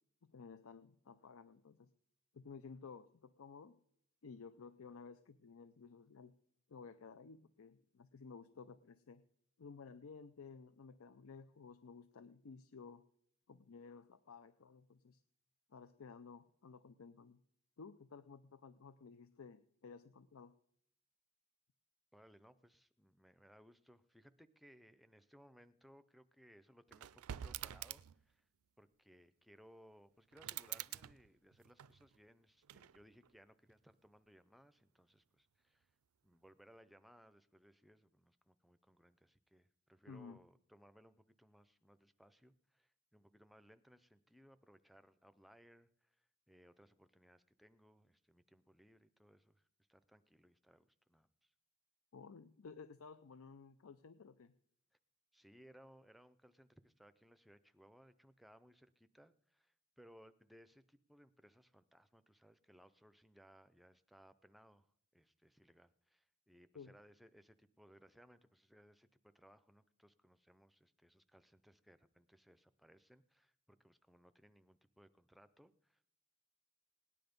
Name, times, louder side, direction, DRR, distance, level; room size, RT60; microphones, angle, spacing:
voice 1, 0.2-1.9 2.3-3.8 4.2-6.4 6.7-9.2 9.6-13.0 13.5-15.2 15.7-17.4 17.8-20.5 40.1-40.4 52.1-54.5 66.7-66.9, left 5 dB, 75° left, 14 dB, 0.5 m, -55 dB
voice 2, 22.1-28.5 28.8-35.9 36.2-51.5 55.3-76.1, equal, ahead, 11 dB, 0.5 m, -65 dB
sound 1, 26.9-28.3 30.3-32.2 32.6-33.3, right 11 dB, 90° right, 0.4 m, -48 dB
18.0 x 10.0 x 5.2 m, 0.71 s
head